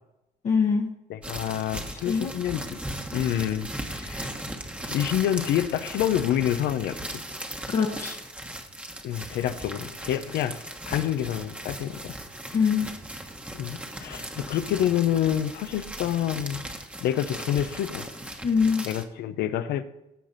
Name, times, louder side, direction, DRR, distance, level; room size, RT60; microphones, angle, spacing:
voice 1, 0.4-0.9 1.9-2.3 7.7-8.2 12.5-12.9 18.4-18.9, left 5 dB, 40° left, 0 dB, 1.1 m, -23 dB
voice 2, 1.1-2.8 3.1-4.3 4.8-7.2 9.0-12.2 13.5-18.1 18.8-19.8, left 11 dB, 80° left, 11 dB, 0.8 m, -28 dB
sound 1, 1.2-19.0, right 1 dB, 5° right, 1.2 m, -38 dB
15.0 x 5.1 x 4.1 m, 0.90 s
cardioid pair, 110°, 17 cm